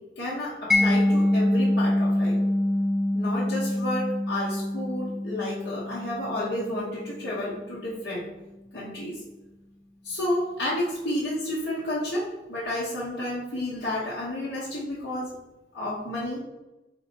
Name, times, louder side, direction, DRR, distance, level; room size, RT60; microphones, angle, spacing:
voice 1, 0.2-2.4 3.1-8.2 8.7-9.2 10.0-15.3 15.7-16.4, left 1 dB, 65° left, -8 dB, 1.1 m, -31 dB
Mallet percussion, 0.7-7.5, left 1 dB, ahead, 0.4 m, -25 dB
4.2 x 3.0 x 4.2 m, 1.0 s
head